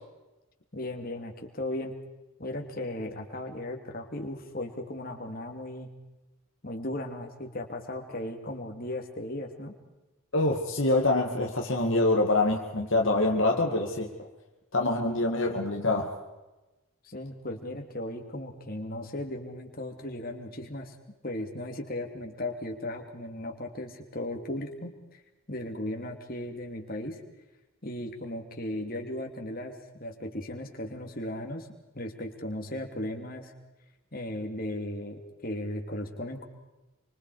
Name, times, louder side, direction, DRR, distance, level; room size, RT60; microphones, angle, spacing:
voice 1, 0.7-1.9 2.4-5.9 6.6-9.7 17.0-20.9 21.2-25.2 25.5-27.2 27.8-31.7 31.9-33.5 34.1-36.5, left 1 dB, 45° left, 3 dB, 2.7 m, -36 dB
voice 2, 10.3-14.1 14.7-16.1, left 2 dB, 60° left, 1 dB, 2.1 m, -25 dB
26.5 x 25.0 x 4.9 m, 1.1 s
head